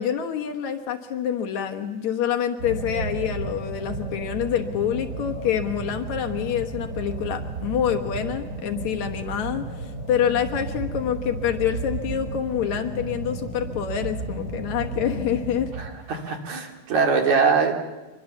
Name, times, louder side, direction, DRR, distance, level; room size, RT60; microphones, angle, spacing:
voice 1, 0.0-15.7, left 9 dB, 75° left, 5 dB, 2.6 m, -26 dB
sound 1, 2.6-15.9, right 2 dB, 25° right, 4.4 m, -33 dB
voice 2, 15.8-17.7, right 5 dB, 75° right, 2 dB, 4.0 m, -22 dB
25.0 x 21.5 x 7.2 m, 1.2 s
omnidirectional pair, 3.3 m